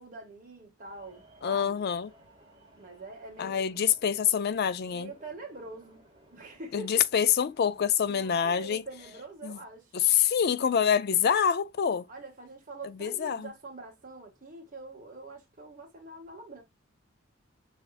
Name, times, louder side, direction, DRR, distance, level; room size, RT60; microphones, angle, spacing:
voice 1, 0.0-1.8 2.7-3.9 4.9-6.0 6.3-7.0 8.1-9.9 12.1-16.6, right 3 dB, 40° right, 1.7 m, -45 dB
sound 1, 0.8-9.2, right 1 dB, 20° right, 1.8 m, -59 dB
voice 2, 1.4-2.1 3.4-5.1 6.7-8.8 9.4-9.6 9.9-12.1 12.8-13.5, left 8 dB, 50° left, 0.4 m, -26 dB
5.6 x 3.4 x 2.4 m
head